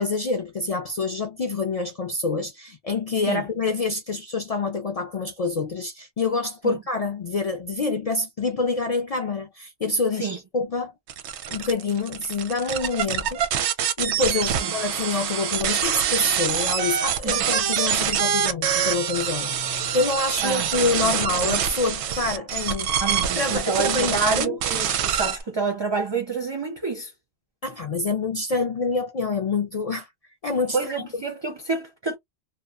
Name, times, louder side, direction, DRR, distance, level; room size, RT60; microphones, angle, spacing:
voice 1, 0.0-10.9 11.5-13.4 14.0-22.9 23.4-24.6 27.6-30.1 30.4-31.1, left 3 dB, 55° left, 0.4 m, -26 dB
sound 1, 11.1-25.4, right 8 dB, 90° right, 0.9 m, -25 dB
voice 2, 23.0-27.1 30.7-32.2, right 4 dB, 35° right, 0.5 m, -28 dB
2.8 x 2.0 x 2.3 m
omnidirectional pair, 1.1 m